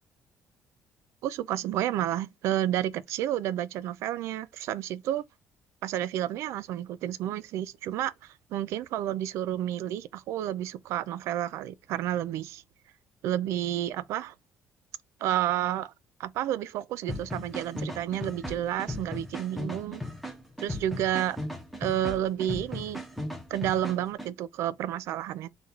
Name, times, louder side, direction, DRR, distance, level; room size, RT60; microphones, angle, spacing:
voice 1, 1.2-5.2 5.8-12.6 13.2-14.3 15.2-15.9 16.2-20.0 20.6-21.4 21.8-23.0 23.5-25.5, right 12 dB, 80° right, 0.4 m, -30 dB
sound 1, 17.1-24.3, left 1 dB, ahead, 0.8 m, -37 dB
3.9 x 2.3 x 3.9 m
cardioid pair, 135°, 5 cm